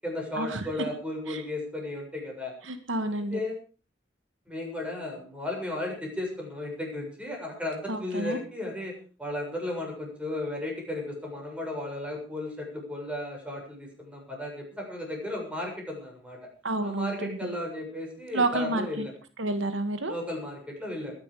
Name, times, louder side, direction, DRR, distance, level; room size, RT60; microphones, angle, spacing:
voice 1, 0.0-2.5 3.1-3.6 4.5-16.4 16.8-19.1 20.1-21.1, left 1 dB, 5° right, 0 dB, 7.0 m, -35 dB
voice 2, 2.6-3.4 7.9-8.4 16.6-17.5 18.3-19.1 19.4-20.2, right 2 dB, 90° right, 8 dB, 2.1 m, -29 dB
21.5 x 11.0 x 5.1 m, 0.38 s
head